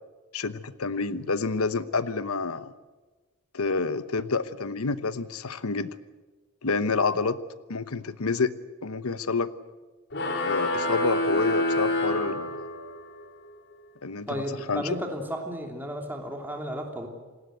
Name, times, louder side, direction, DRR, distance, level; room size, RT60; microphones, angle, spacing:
voice 1, 0.3-2.7 3.5-5.9 6.6-7.4 7.7-8.5 8.8-9.5 10.4-12.7 14.0-14.4 14.7-14.8, left 4 dB, 75° left, 14 dB, 1.0 m, -28 dB
sound 1, 10.1-13.0, left 1 dB, 50° left, 4.9 m, -27 dB
voice 2, 14.3-17.1, equal, 10° right, 2 dB, 3.2 m, -33 dB
27.5 x 19.0 x 8.1 m, 1.3 s
head